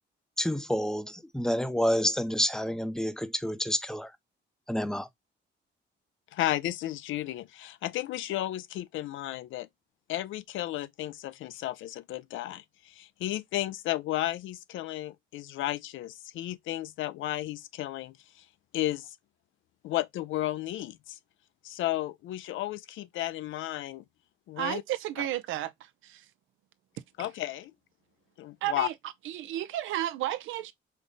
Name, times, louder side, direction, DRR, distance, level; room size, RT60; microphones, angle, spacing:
voice 1, 0.4-4.1 4.7-5.1, equal, 5° left, 0.6 m, -29 dB
voice 2, 6.3-9.7 10.1-18.4 18.7-19.1 19.8-21.2 21.6-24.0 24.5-24.8 27.2-27.7 28.4-28.9, left 14 dB, 80° left, 0.4 m, -33 dB
voice 3, 24.6-26.2 28.6-28.9 29.2-30.7, right 13 dB, 85° right, 0.5 m, -32 dB
5.2 x 2.1 x 3.8 m
cardioid pair, 90°, 20 cm